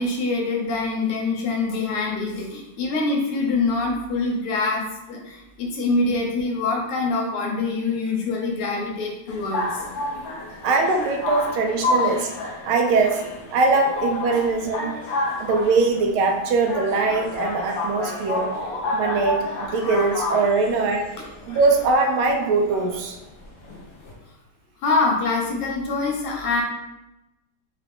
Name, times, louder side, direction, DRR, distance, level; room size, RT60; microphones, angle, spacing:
voice 1, 0.0-9.8 18.0-18.2 24.8-26.6, left 3 dB, 85° left, -1 dB, 1.8 m, -25 dB
sound 1, 9.3-24.1, left 2 dB, 60° left, 1.0 m, -30 dB
voice 2, 10.6-12.3 12.7-13.2 13.5-14.9 15.4-18.5 18.9-21.1 21.5-23.2, right 3 dB, 80° right, 3 dB, 1.4 m, -21 dB
4.6 x 2.4 x 3.4 m, 0.94 s
omnidirectional pair, 2.4 m